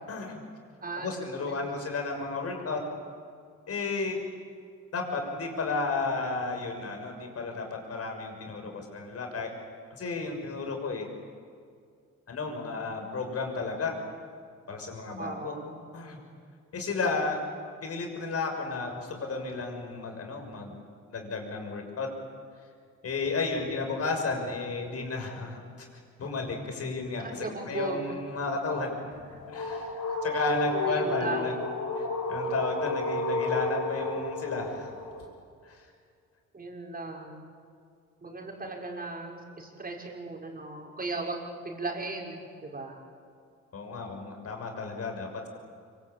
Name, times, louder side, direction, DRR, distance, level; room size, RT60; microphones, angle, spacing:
voice 1, 0.1-0.4 0.9-2.8 3.7-4.2 4.9-9.5 9.9-11.1 12.3-13.9 14.7-15.5 15.9-16.2 16.7-17.4 17.8-20.7 21.1-22.1 23.0-25.9 26.2-29.0 29.5-29.9 30.2-31.5 31.9-34.9 35.6-35.9 43.7-45.5, left 3 dB, 50° left, 3 dB, 6.6 m, -33 dB
voice 2, 0.8-1.9 15.2-15.9 27.2-28.2 29.3-29.4 30.0-30.2 30.8-31.6 36.5-37.5 38.2-43.0, right 3 dB, 30° right, 0 dB, 6.0 m, -37 dB
sound 1, 29.1-35.2, left 2 dB, 80° left, 6.0 m, -32 dB
26.0 x 24.5 x 8.8 m, 2.2 s
cardioid pair, 90°, 30 cm